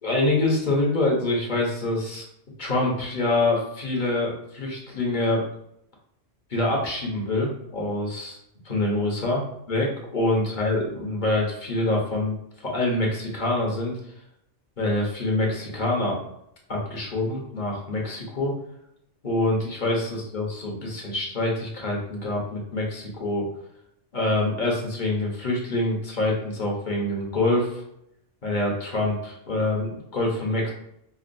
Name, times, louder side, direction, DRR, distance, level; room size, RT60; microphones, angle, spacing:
voice 1, 0.0-2.2 2.6-5.4 6.5-8.4 8.6-9.4 9.7-13.9 14.8-16.2 16.7-18.5 19.2-23.5 24.1-27.7 28.4-30.7, left 2 dB, 45° left, -2 dB, 1.0 m, -25 dB
5.2 x 2.4 x 2.5 m, 0.76 s
omnidirectional pair, 1.2 m